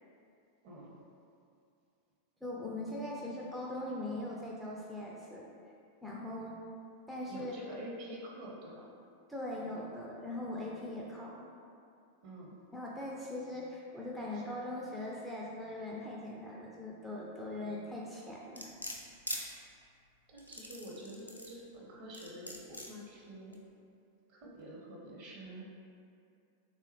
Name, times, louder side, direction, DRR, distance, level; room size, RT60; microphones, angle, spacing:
voice 1, 0.6-1.0 7.3-8.8 12.2-12.5 14.3-14.4 20.3-23.6 24.3-25.6, right 1 dB, 45° right, -3 dB, 0.6 m, -47 dB
voice 2, 2.4-5.5 6.0-6.6 7.1-7.6 9.3-11.5 12.7-18.7, left 1 dB, ahead, -5 dB, 0.3 m, -41 dB
sound 1, 18.6-19.4 20.4-21.6 22.1-22.9 23.5-23.6, left 1 dB, 90° left, 0.3 m, -41 dB
3.3 x 2.1 x 2.9 m, 2.5 s
figure-of-eight pair, 90°, 0 cm